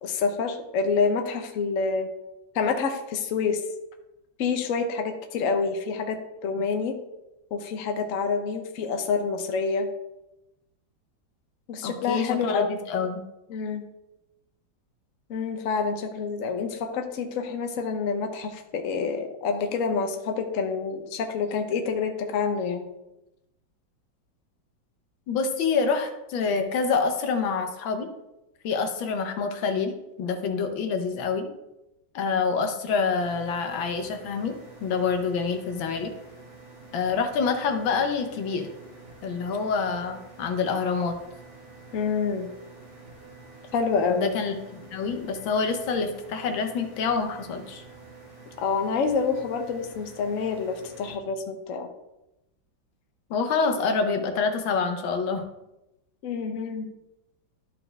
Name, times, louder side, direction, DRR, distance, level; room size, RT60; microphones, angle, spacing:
voice 1, 0.0-2.1 2.5-3.6 4.4-7.0 7.5-9.9 11.7-12.7 13.5-13.8 15.3-22.9 41.9-42.5 43.7-44.3 48.6-51.9 56.2-56.9, left 5 dB, 55° left, 5 dB, 1.0 m, -27 dB
voice 2, 11.8-13.2 25.3-28.1 28.6-31.5 32.1-34.5 34.8-36.1 36.9-38.7 39.2-41.1 44.1-47.8 53.3-55.4, left 5 dB, 85° left, 6 dB, 1.7 m, -27 dB
sound 1, 33.1-51.1, right 3 dB, 85° right, 2.8 m, -48 dB
12.5 x 4.3 x 3.4 m, 0.92 s
omnidirectional pair, 2.1 m